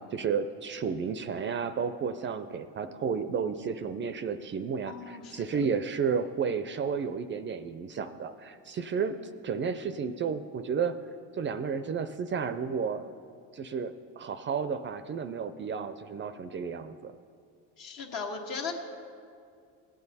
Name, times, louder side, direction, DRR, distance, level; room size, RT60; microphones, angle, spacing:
voice 1, 0.0-9.2 9.4-11.0 11.3-13.1 13.5-17.1, right 6 dB, 35° right, 11 dB, 0.4 m, -32 dB
voice 2, 4.9-5.4 17.8-18.7, left 5 dB, 65° left, 1 dB, 1.6 m, -37 dB
16.5 x 8.9 x 4.1 m, 2.3 s
cardioid pair, 105°, 36 cm